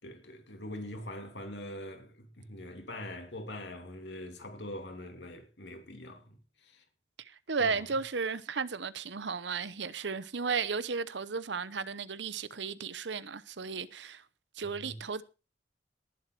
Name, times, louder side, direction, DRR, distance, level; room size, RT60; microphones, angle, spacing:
voice 1, 0.0-6.8 7.6-7.8 14.6-15.0, left 1 dB, 70° left, 3.0 m, -43 dB
voice 2, 7.2-14.2 14.6-15.2, right 5 dB, 75° right, 0.8 m, -34 dB
19.0 x 7.6 x 4.6 m
head